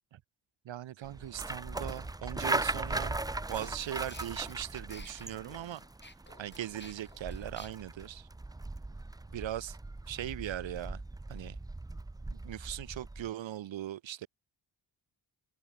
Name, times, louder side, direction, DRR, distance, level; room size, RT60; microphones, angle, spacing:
voice 1, 0.6-3.2 3.5-5.8 6.4-8.3 9.3-9.8 10.1-11.0 11.3-11.6 12.3-14.3, right 12 dB, 65° right, 0.7 m, -39 dB
sound 1, 1.0-13.3, right 2 dB, 10° right, 0.4 m, -39 dB
sound 2, 3.5-7.7, left 2 dB, 20° left, 5.8 m, -53 dB
cardioid pair, 65°, 50 cm